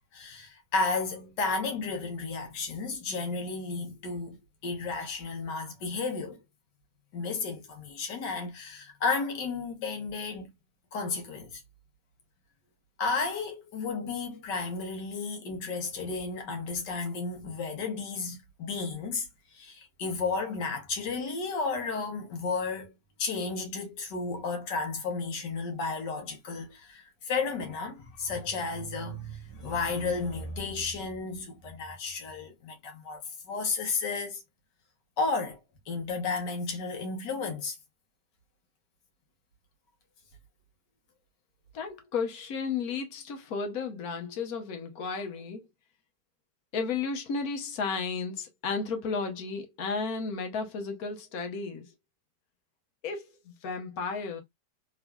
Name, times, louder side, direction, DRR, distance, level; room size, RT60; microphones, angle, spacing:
voice 1, 0.1-4.4 4.6-6.4 7.1-10.5 10.9-11.6 13.0-19.3 19.5-22.9 23.2-33.2 33.5-34.4 35.2-35.6 35.9-37.8, left 4 dB, 80° left, 1.7 m, -33 dB
voice 2, 41.7-45.6 46.7-51.9 53.0-54.4, left 5 dB, 60° left, 1.4 m, -33 dB
3.7 x 3.1 x 2.2 m
omnidirectional pair, 1.8 m